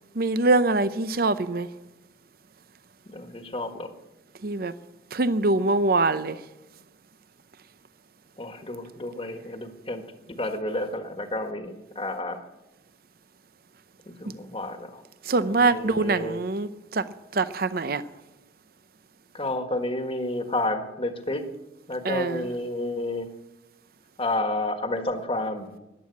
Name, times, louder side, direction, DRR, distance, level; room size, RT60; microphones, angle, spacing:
voice 1, 0.1-1.7 4.4-4.7 5.1-6.4 15.2-18.0 22.0-22.5, right 3 dB, 55° right, 0.7 m, -24 dB
voice 2, 3.1-3.9 8.4-12.4 14.1-15.0 15.5-16.4 19.3-21.5 21.9-23.3 24.2-25.7, left 1 dB, 30° left, 1.6 m, -30 dB
14.5 x 10.5 x 8.4 m
head